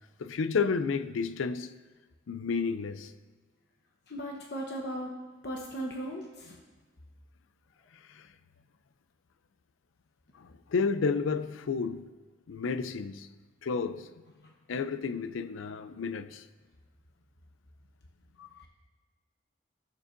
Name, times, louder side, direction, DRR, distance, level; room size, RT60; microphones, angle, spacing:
voice 1, 0.2-1.8 2.3-3.1 8.1-8.3 10.3-12.1 12.5-13.3 13.6-14.1 14.7-16.4 18.4-18.6, left 5 dB, 85° left, 0.4 m, -31 dB
voice 2, 4.1-5.1 5.4-6.6, right 1 dB, 55° left, 0.9 m, -37 dB
15.5 x 6.7 x 2.6 m
head